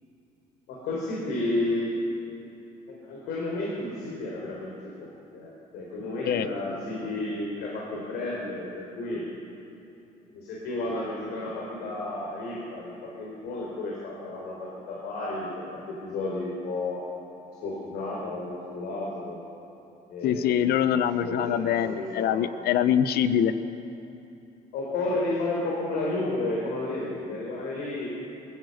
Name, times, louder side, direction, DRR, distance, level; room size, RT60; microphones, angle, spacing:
voice 1, 0.7-2.0 2.9-9.2 10.3-17.0 17.6-19.4 20.1-22.5 24.7-28.2, left 2 dB, 85° left, -3 dB, 4.7 m, -32 dB
voice 2, 20.2-23.5, left 9 dB, 70° left, 12 dB, 0.9 m, -24 dB
21.5 x 16.5 x 8.0 m, 2.9 s
cardioid pair, 110°, 17 cm